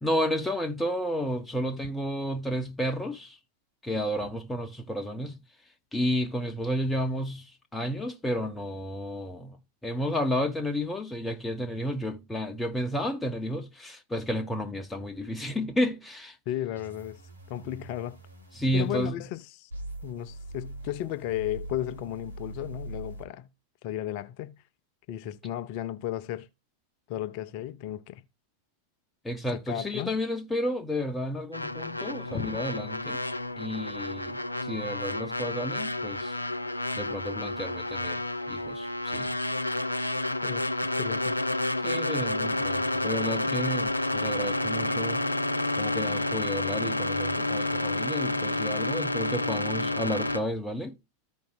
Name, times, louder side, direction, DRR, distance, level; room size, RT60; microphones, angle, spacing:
voice 1, 0.0-3.4 3.8-5.4 5.9-7.5 7.7-16.4 18.6-19.2 29.2-33.2 33.6-36.4 36.9-38.2 38.5-39.3 41.8-45.3 45.8-51.0, equal, 10° left, 1.1 m, -31 dB
voice 2, 16.5-17.2 17.5-18.2 18.7-19.7 20.0-23.5 23.8-24.5 25.1-26.5 27.1-28.2 29.5-30.1 32.3-32.6 40.4-41.4 43.5-43.6, left 12 dB, 45° left, 0.7 m, -34 dB
sound 1, 16.7-19.1 19.7-23.2, right 1 dB, 80° right, 1.6 m, -42 dB
sound 2, 31.5-50.4, left 2 dB, 85° left, 0.5 m, -30 dB
14.0 x 5.2 x 2.3 m
figure-of-eight pair, 90°, 0 cm